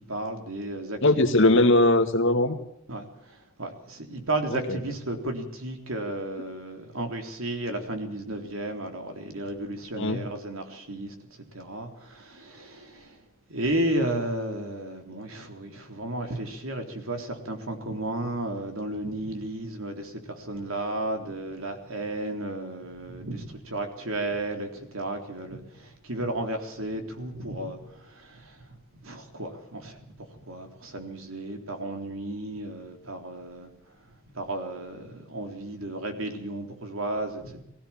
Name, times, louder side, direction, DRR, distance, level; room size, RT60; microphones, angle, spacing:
voice 1, 0.1-1.0 1.5-1.7 2.9-11.1 11.5-13.2 13.5-28.7 29.0-30.0 30.3-33.7 34.3-37.6, right 1 dB, 80° right, 5 dB, 3.7 m, -33 dB
voice 2, 1.0-2.6 4.5-4.8 10.0-10.2, left 2 dB, 65° left, 6 dB, 2.2 m, -20 dB
22.0 x 16.0 x 7.4 m, 0.79 s
head